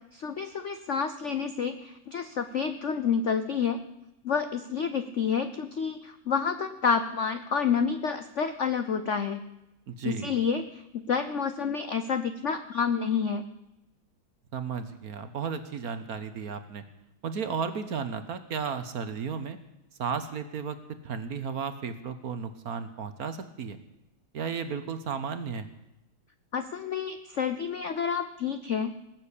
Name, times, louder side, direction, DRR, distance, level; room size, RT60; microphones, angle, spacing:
voice 1, 0.1-3.8 4.2-9.4 10.0-13.4 26.5-28.9, left 6 dB, 65° left, 10 dB, 0.7 m, -29 dB
voice 2, 9.9-10.3 14.5-16.8 17.2-19.6 20.0-23.8 24.3-25.7, right 6 dB, 55° right, 11 dB, 1.3 m, -34 dB
19.5 x 7.5 x 8.3 m, 0.88 s
omnidirectional pair, 2.2 m